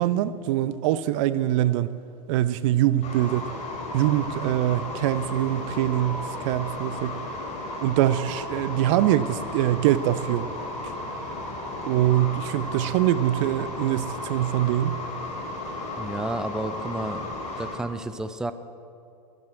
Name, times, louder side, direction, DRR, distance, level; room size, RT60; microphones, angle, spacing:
voice 1, 0.0-1.9 2.3-3.5 3.9-7.2 7.8-10.5 11.9-15.0, right 13 dB, 50° right, 0.7 m, -23 dB
sound 1, 3.0-17.8, left 2 dB, 35° left, 4.0 m, -34 dB
voice 2, 16.0-18.5, right 2 dB, 5° right, 0.6 m, -32 dB
13.5 x 10.5 x 8.8 m
hypercardioid pair, 100°, 21 cm